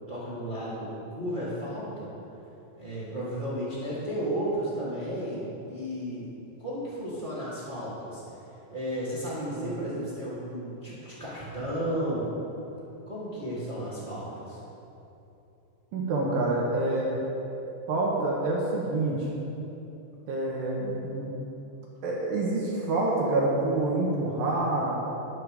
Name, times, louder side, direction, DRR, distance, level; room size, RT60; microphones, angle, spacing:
voice 1, 0.1-2.1 2.8-6.3 6.6-12.3 13.0-14.6, right 1 dB, 20° right, -10 dB, 1.5 m, -33 dB
voice 2, 15.9-17.2 17.9-19.3 20.3-21.3 22.0-25.0, right 2 dB, 70° right, -3 dB, 2.3 m, -27 dB
12.0 x 11.5 x 3.4 m, 2.9 s
omnidirectional pair, 5.4 m